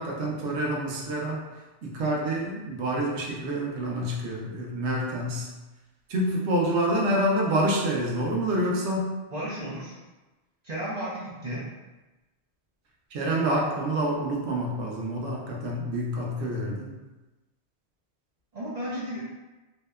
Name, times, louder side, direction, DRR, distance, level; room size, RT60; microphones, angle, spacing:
voice 1, 0.0-1.4 1.8-5.5 6.1-9.1 13.1-16.9, right 1 dB, 90° right, -2 dB, 0.9 m, -27 dB
voice 2, 9.3-10.0 10.6-11.6 18.5-19.2, equal, 50° right, -8 dB, 0.5 m, -33 dB
2.7 x 2.1 x 2.2 m, 1.1 s
omnidirectional pair, 1.1 m